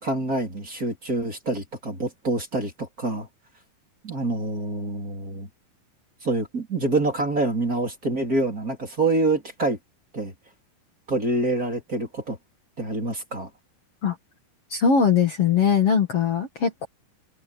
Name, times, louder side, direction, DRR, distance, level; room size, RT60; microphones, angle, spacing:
voice 1, 0.0-3.3 4.0-5.5 6.2-9.8 10.1-10.3 11.1-12.4 12.8-13.5, right 2 dB, 25° right, 4.1 m, -26 dB
voice 2, 14.7-16.9, left 6 dB, 45° left, 2.6 m, -21 dB
open air
omnidirectional pair, 4.1 m